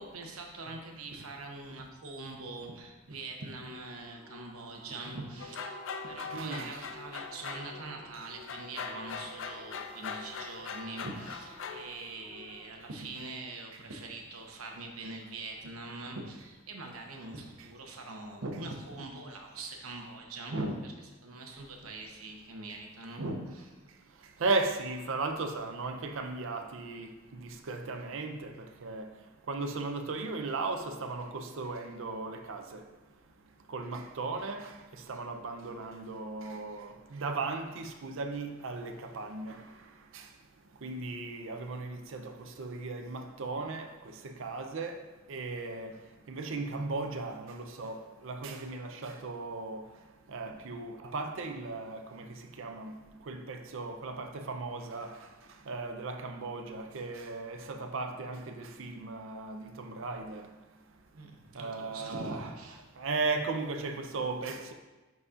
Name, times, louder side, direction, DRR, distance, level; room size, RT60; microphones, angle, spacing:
voice 1, 0.0-5.8 6.0-23.7 50.5-50.6 61.1-62.8, right 2 dB, 85° right, 0.9 m, -42 dB
sound 1, 3.6-13.0, left 3 dB, 25° left, 2.1 m, -54 dB
sound 2, 5.4-8.1 8.5-11.9, left 5 dB, 65° left, 0.5 m, -41 dB
voice 2, 6.3-6.8 24.4-27.1 27.7-28.5 28.8-29.1 29.5-32.8 33.7-34.7 35.1-39.6 40.8-42.2 42.6-43.9 44.4-44.9 45.3-45.9 46.3-49.8 50.3-52.2 52.6-52.9 53.3-55.1 55.7-60.4 61.6-62.5 63.0-64.7, right 3 dB, 65° right, 0.6 m, -36 dB
10.5 x 4.1 x 2.4 m
head